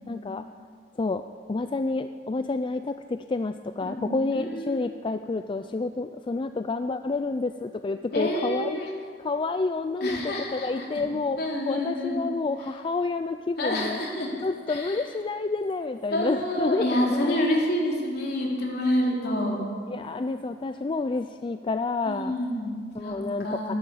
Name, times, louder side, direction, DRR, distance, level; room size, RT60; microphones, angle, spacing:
voice 1, 0.1-0.5 1.0-8.9 9.2-14.0 14.4-17.4 19.5-22.4 22.9-23.7, left 3 dB, 25° left, 9 dB, 0.4 m, -29 dB
voice 2, 3.8-4.9 8.1-8.9 10.0-10.9 11.4-12.2 13.6-14.3 14.7-15.0 16.1-19.6 22.1-23.2 23.4-23.8, left 1 dB, 60° left, -2 dB, 3.5 m, -28 dB
13.0 x 11.5 x 8.5 m, 2.1 s
head